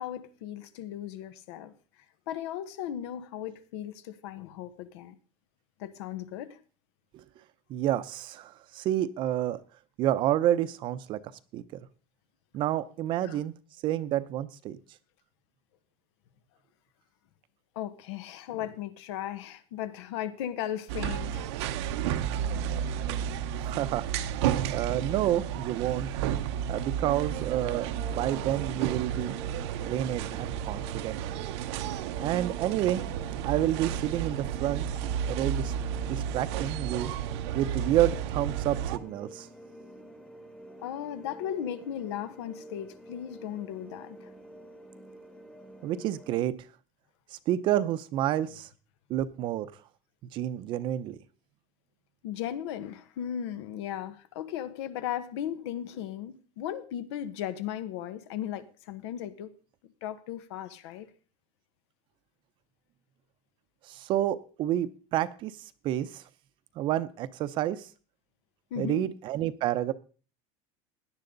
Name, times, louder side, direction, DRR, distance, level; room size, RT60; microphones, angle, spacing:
voice 1, 0.0-1.7 2.3-5.2 5.8-6.6 13.2-13.4 17.7-21.5 40.8-44.3 52.2-59.5 60.0-61.1 68.7-69.1, left 10 dB, 90° left, 12 dB, 1.5 m, -36 dB
voice 2, 7.7-9.6 10.0-11.2 11.5-11.6 12.5-13.5 13.8-14.8 23.6-24.0 24.7-26.1 26.6-29.3 29.8-31.2 32.2-33.0 33.4-34.9 35.3-35.7 36.1-37.1 37.5-39.5 45.8-46.5 47.5-48.7 49.1-49.7 50.3-51.2 63.9-65.5 65.8-66.2 66.8-67.9 68.8-69.9, right 12 dB, 35° right, 14 dB, 0.7 m, -29 dB
sound 1, 20.9-39.0, right 9 dB, 80° right, 0.9 m, -32 dB
sound 2, 27.3-46.4, right 1 dB, 5° left, 1.1 m, -49 dB
17.0 x 10.5 x 3.9 m, 0.38 s
cardioid pair, 175°, 14 cm